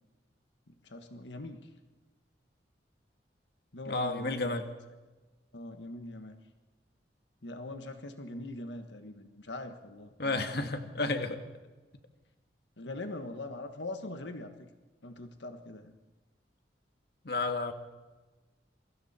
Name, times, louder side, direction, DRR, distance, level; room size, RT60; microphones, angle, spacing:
voice 1, 0.8-1.6 3.7-4.7 5.5-6.4 7.4-10.7 12.8-14.7 15.0-15.9, left 2 dB, 80° left, 7 dB, 1.6 m, -42 dB
voice 2, 3.9-4.6 10.2-11.4 17.2-17.7, left 2 dB, 60° left, 6 dB, 1.8 m, -31 dB
28.0 x 23.5 x 4.4 m, 1.2 s
head